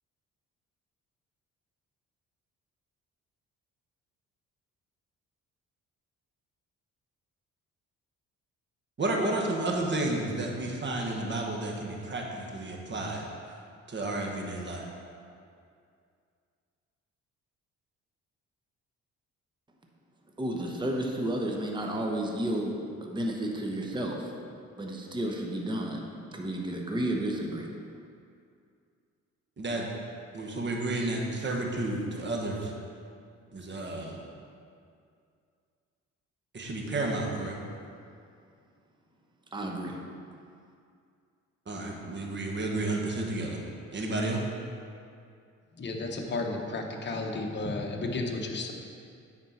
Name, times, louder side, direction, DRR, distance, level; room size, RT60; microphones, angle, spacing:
voice 1, 9.0-13.2 13.9-14.8 29.6-29.9 30.3-32.7 33.5-34.2 36.5-37.6 41.7-43.6 43.9-44.4, right 2 dB, 35° right, 0 dB, 1.5 m, -31 dB
voice 2, 20.4-22.7 23.0-24.3 24.8-27.7 39.5-40.0, right 1 dB, 15° right, 0 dB, 1.0 m, -32 dB
voice 3, 45.8-48.7, left 2 dB, 35° left, 1 dB, 1.1 m, -33 dB
8.9 x 4.5 x 5.7 m, 2.4 s
cardioid pair, 90°, 30 cm